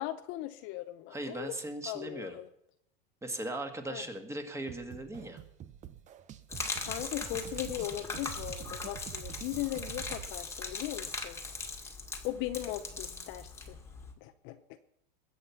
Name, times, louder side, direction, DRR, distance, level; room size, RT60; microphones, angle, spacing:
voice 1, 0.0-1.6 1.9-2.5 3.9-4.0 6.8-11.4 12.2-13.8 14.2-14.8, left 14 dB, 40° left, 9 dB, 0.8 m, -38 dB
voice 2, 1.1-2.4 3.2-5.4, right 1 dB, 10° right, 6 dB, 1.8 m, -38 dB
sound 1, 4.7-10.3, right 11 dB, 25° right, 0.7 m, -47 dB
Gurgling / Liquid, 6.5-14.1, left 3 dB, 10° left, 1.9 m, -40 dB
21.0 x 8.0 x 5.8 m, 0.76 s
supercardioid pair, 135°, 29 cm